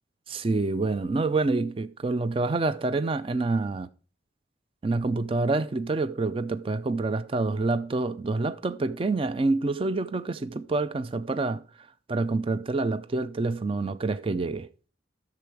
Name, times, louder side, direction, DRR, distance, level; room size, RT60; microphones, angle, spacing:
voice 1, 0.3-3.9 4.8-11.6 12.1-14.7, right 3 dB, 25° right, 0.3 m, -27 dB
10.5 x 6.8 x 4.6 m
head